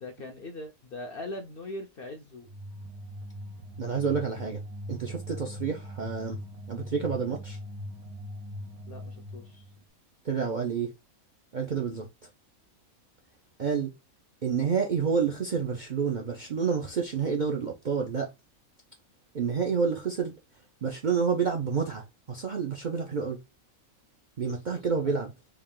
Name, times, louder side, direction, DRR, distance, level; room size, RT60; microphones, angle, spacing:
voice 1, 0.0-2.5 8.9-9.7 11.9-12.1 24.4-24.8, left 1 dB, 60° left, 0.6 m, -41 dB
sound 1, 2.4-9.8, left 1 dB, 85° right, 1.5 m, -41 dB
voice 2, 3.8-4.6 4.9-6.4 6.7-7.6 10.2-10.9 11.5-12.3 13.6-13.9 14.4-18.3 19.3-20.3 20.8-23.4 24.4-25.3, right 6 dB, 55° right, 0.5 m, -29 dB
3.4 x 2.4 x 3.6 m
omnidirectional pair, 1.4 m